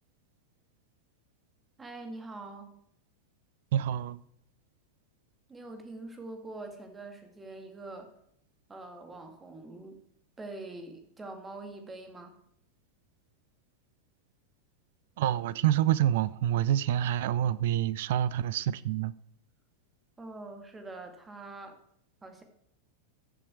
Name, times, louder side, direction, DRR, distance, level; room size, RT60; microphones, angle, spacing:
voice 1, 1.8-2.7 5.5-8.1 8.7-10.0 10.4-12.4 20.2-21.8 22.2-22.4, right 2 dB, 15° right, 2.3 m, -44 dB
voice 2, 3.7-4.2 15.2-19.1, right 11 dB, 55° right, 0.5 m, -27 dB
14.0 x 7.6 x 4.6 m
figure-of-eight pair, 90°, 0 cm